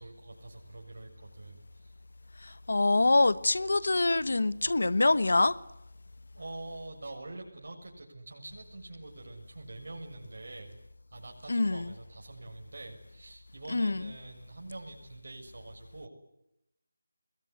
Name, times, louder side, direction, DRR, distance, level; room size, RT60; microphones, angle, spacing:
voice 1, 0.0-1.9 6.4-10.8 11.1-16.1, right 2 dB, 65° right, 7.0 m, -45 dB
voice 2, 2.4-5.6 11.5-11.9 13.7-14.1, left 2 dB, 75° left, 1.2 m, -25 dB
28.0 x 21.5 x 9.7 m
figure-of-eight pair, 170°, 0 cm